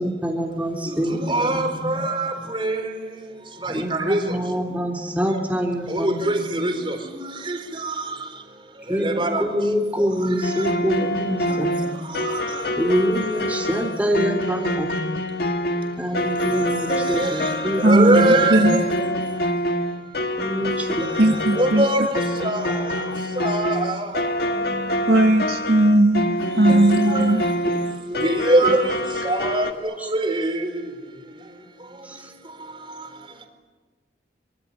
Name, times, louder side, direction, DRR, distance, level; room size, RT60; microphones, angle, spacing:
voice 1, 0.0-2.0 3.6-6.3 8.9-11.8 12.8-15.0 16.0-18.5 20.4-21.5 24.5-25.2 28.6-28.7 30.0-30.1 32.0-32.3, equal, 10° right, 0 dB, 3.1 m, -26 dB
voice 2, 0.8-3.1 3.6-4.4 5.9-8.1 8.9-9.4 10.0-10.7 11.5-11.6 12.1-12.4 12.8-12.9 16.5-18.9 21.3-23.0 23.4-24.6 26.4-27.4 28.1-30.9 33.0-33.1, right 1 dB, 30° right, 5 dB, 4.2 m, -24 dB
sound 1, 10.4-29.7, left 1 dB, 60° left, 1.8 m, -26 dB
voice 3, 17.8-18.8 21.2-21.8 25.1-27.4, right 1 dB, 65° right, 4 dB, 1.8 m, -17 dB
25.0 x 23.5 x 9.9 m, 1.3 s
head